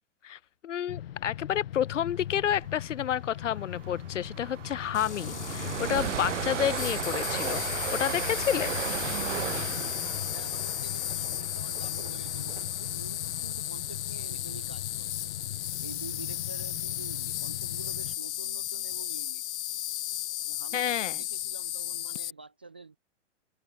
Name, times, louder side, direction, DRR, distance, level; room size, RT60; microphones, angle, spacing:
voice 1, 0.2-8.8 20.7-21.2, left 10 dB, 90° left, 1.3 m, -30 dB
sound 1, 0.9-18.2, left 11 dB, 55° left, 1.0 m, -41 dB
Train, 2.4-2.7 2.9-3.1 3.5-13.6, right 10 dB, 80° right, 1.5 m, -36 dB
Insect, 4.9-22.3, left 13 dB, 70° left, 0.5 m, -35 dB
voice 2, 10.3-15.3 15.8-19.4 20.4-23.0, right 4 dB, 10° right, 0.4 m, -47 dB
hypercardioid pair, 175°, 36 cm